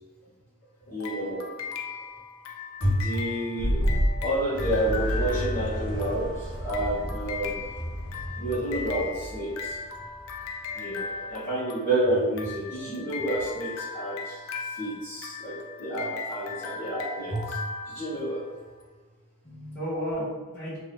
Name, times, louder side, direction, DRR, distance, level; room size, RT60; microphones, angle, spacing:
voice 1, 0.9-1.4 2.8-3.8 4.2-7.5 8.4-9.8 10.7-14.4 14.7-17.6 17.9-18.4 19.4-19.8, right 1 dB, 35° left, -12 dB, 1.0 m, -29 dB
sound 1, 1.0-18.7, left 4 dB, 70° left, 0.4 m, -38 dB
sound 2, 3.6-4.2, equal, 80° right, 0.6 m, -23 dB
sound 3, 4.5-10.9, equal, 25° right, 0.4 m, -34 dB
voice 2, 11.0-11.5 16.5-16.7 19.7-20.8, equal, 10° left, -15 dB, 1.4 m, -35 dB
2.7 x 2.6 x 3.6 m, 1.3 s
head